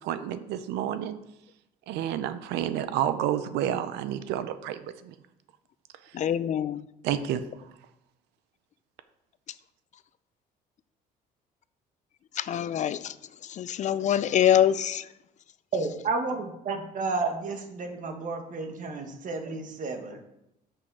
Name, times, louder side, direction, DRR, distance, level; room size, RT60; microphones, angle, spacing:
voice 1, 0.0-1.2 1.9-5.1 6.0-6.2 7.0-7.4, right 10 dB, 90° right, 12 dB, 0.6 m, -30 dB
voice 2, 6.1-6.8 12.4-13.1 13.4-15.1, left 10 dB, 45° left, 15 dB, 0.4 m, -25 dB
voice 3, 15.7-20.2, right 3 dB, 50° right, 5 dB, 1.4 m, -31 dB
7.6 x 6.4 x 4.7 m, 0.83 s
cardioid pair, 110°, 17 cm